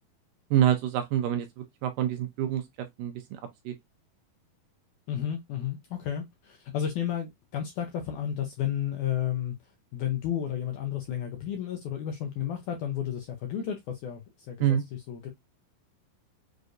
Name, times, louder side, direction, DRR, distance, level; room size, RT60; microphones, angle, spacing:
voice 1, 0.5-1.5 1.8-2.6 3.0-3.1 3.7-3.8 14.6-14.8, right 11 dB, 80° right, 2.0 m, -25 dB
voice 2, 5.1-9.6 9.9-15.3, left 10 dB, 80° left, 1.8 m, -32 dB
6.5 x 2.6 x 2.4 m
omnidirectional pair, 4.2 m